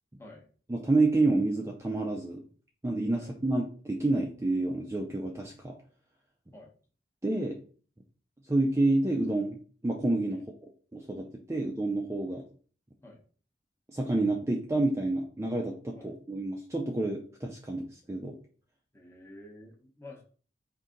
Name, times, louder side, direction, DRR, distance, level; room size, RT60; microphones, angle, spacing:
voice 1, 0.7-2.4 2.8-5.7 7.2-7.6 8.5-9.6 9.8-10.4 10.9-12.4 13.9-18.4, right 2 dB, 15° right, 0 dB, 0.4 m, -29 dB
voice 2, 18.9-20.2, left 1 dB, 15° left, 0 dB, 0.8 m, -50 dB
3.9 x 2.6 x 3.7 m, 0.42 s
head